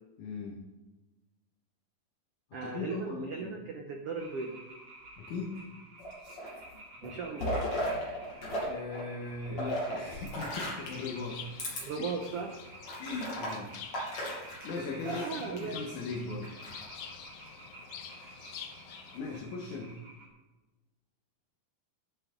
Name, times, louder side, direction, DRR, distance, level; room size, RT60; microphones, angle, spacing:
voice 1, 0.2-0.6 2.6-3.5 5.2-5.7 8.7-11.4 11.7-12.1 13.0-13.7 14.4-16.5 18.1-18.3 19.1-20.0, left 3 dB, 60° left, -1 dB, 2.5 m, -39 dB
voice 2, 2.5-4.6 7.0-7.6 11.8-12.6 15.0-15.8, right 4 dB, 80° right, 3 dB, 1.3 m, -37 dB
sound 1, 4.2-20.3, right 2 dB, 35° right, 2.6 m, -52 dB
sound 2, 6.0-6.7 7.0-8.7 8.9-11.0 11.5-11.8 12.3-12.4 12.8-15.6 16.4-17.0, equal, 45° left, 6.5 m, -36 dB
Bird, 10.4-19.4, left 7 dB, 85° left, 1.3 m, -47 dB
13.5 x 12.5 x 3.9 m, 1.1 s
omnidirectional pair, 4.2 m